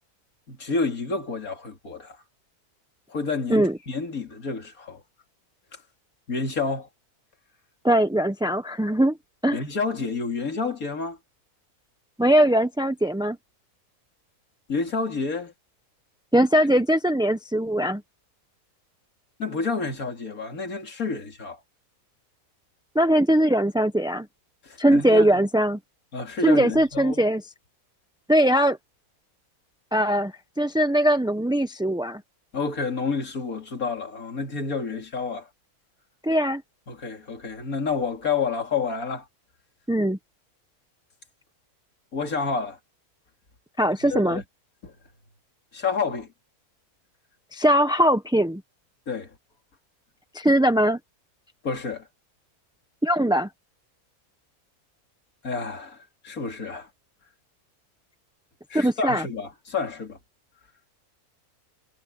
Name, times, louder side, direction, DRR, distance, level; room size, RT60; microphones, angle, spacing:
voice 1, 0.5-2.2 3.1-5.0 6.3-6.9 9.5-11.2 14.7-15.5 19.4-21.6 24.6-25.4 26.1-27.3 32.5-35.5 36.9-39.3 42.1-42.8 44.0-44.4 44.8-44.9 45.7-46.3 49.1-49.3 51.6-52.1 55.4-56.9 58.7-60.2, left 4 dB, 65° left, 3.3 m, -29 dB
voice 2, 7.8-9.2 9.4-9.6 12.2-13.4 16.3-18.0 22.9-24.3 24.8-25.8 26.4-27.4 28.3-28.8 29.9-32.2 36.2-36.6 39.9-40.2 43.8-44.4 47.5-48.6 50.3-51.0 53.0-53.5 58.7-59.2, right 1 dB, 5° right, 0.5 m, -21 dB
omnidirectional pair, 1.6 m